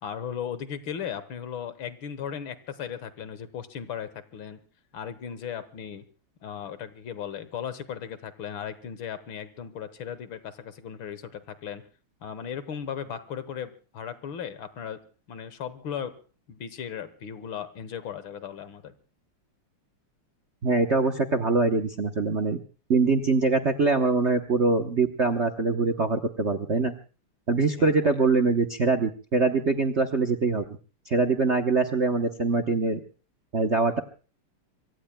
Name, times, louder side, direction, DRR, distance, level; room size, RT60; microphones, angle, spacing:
voice 1, 0.0-4.6 4.9-6.0 6.4-11.8 12.2-15.0 15.3-16.2 16.5-18.9 27.8-28.1, left 8 dB, 65° left, 13 dB, 1.9 m, -36 dB
voice 2, 20.6-22.6 22.9-26.9 27.5-30.6 31.1-33.0 33.5-34.0, right 4 dB, 45° right, 8 dB, 0.9 m, -23 dB
25.5 x 24.0 x 2.2 m, 0.36 s
omnidirectional pair, 2.4 m